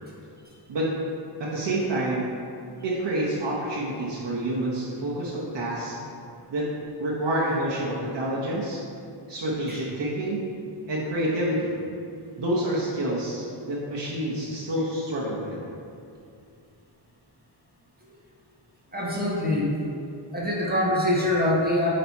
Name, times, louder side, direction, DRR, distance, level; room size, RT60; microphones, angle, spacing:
voice 1, 1.4-2.3 2.8-6.0 6.5-6.6 7.0-8.8 9.3-10.4 10.9-11.8 12.4-15.6, right 1 dB, 65° right, -6 dB, 1.2 m, -28 dB
voice 2, 18.9-19.7 20.3-21.9, left 1 dB, 20° right, -5 dB, 1.3 m, -24 dB
8.9 x 3.3 x 4.2 m, 2.4 s
wide cardioid pair, 100°, 46 cm